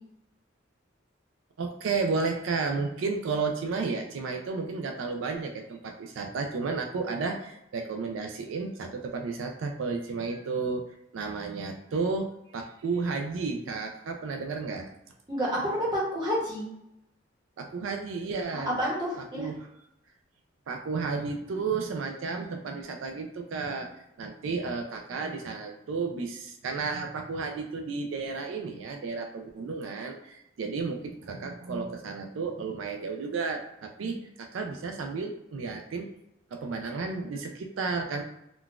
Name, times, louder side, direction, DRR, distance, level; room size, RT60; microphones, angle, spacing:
voice 1, 1.6-10.8 11.1-14.9 17.6-18.7 19.4-19.7 20.7-23.9 24.2-36.1 36.5-38.2, right 4 dB, 85° right, 4 dB, 0.4 m, -32 dB
voice 2, 15.3-16.6 18.5-19.5 34.1-34.2, equal, 20° right, -5 dB, 0.9 m, -29 dB
3.7 x 2.3 x 2.4 m, 0.83 s
head